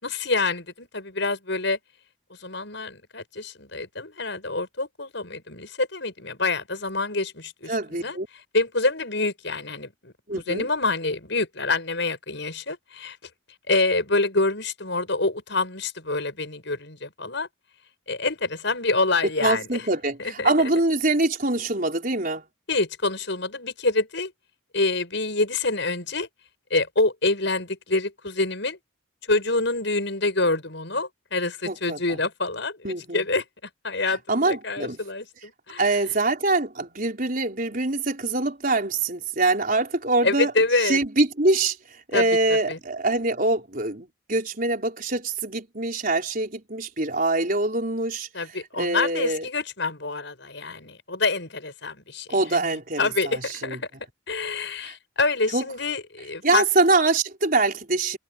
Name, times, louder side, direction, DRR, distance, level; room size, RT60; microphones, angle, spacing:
voice 1, 0.0-1.8 2.4-8.2 8.5-10.1 10.5-13.2 13.7-17.5 18.1-19.8 20.4-20.5 22.7-24.3 24.7-26.3 26.7-28.8 29.3-33.4 33.8-35.9 40.2-41.0 42.1-42.3 42.7-42.8 48.3-52.6 53.0-53.9 54.3-56.6, left 3 dB, 60° left, 7.4 m, -26 dB
voice 2, 7.7-8.3 10.3-10.7 19.4-22.4 31.6-32.0 32.8-33.2 34.3-35.0 35.8-40.5 40.8-49.5 52.3-53.8 54.8-54.9 55.5-55.6 56.4-58.2, right 2 dB, 45° right, 4.9 m, -24 dB
head